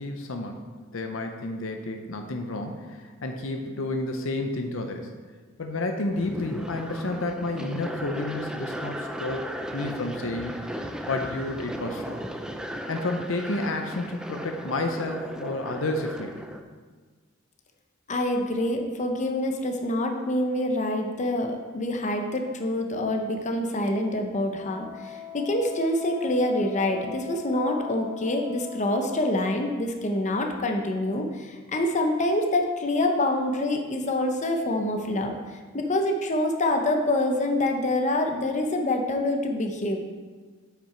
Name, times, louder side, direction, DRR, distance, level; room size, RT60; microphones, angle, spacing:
voice 1, 0.0-5.1 5.6-9.5 9.7-12.2 12.9-16.4, left 2 dB, 70° left, 5 dB, 0.7 m, -31 dB
sound 1, 6.1-16.6, equal, 5° right, 0.4 m, -36 dB
voice 2, 18.1-35.4 35.7-40.0, left 1 dB, 35° left, 3 dB, 0.8 m, -26 dB
Wind instrument woodwind instrument, 24.5-29.7, left 8 dB, 15° left, 1.9 m, -41 dB
8.6 x 5.8 x 4.5 m, 1.4 s
head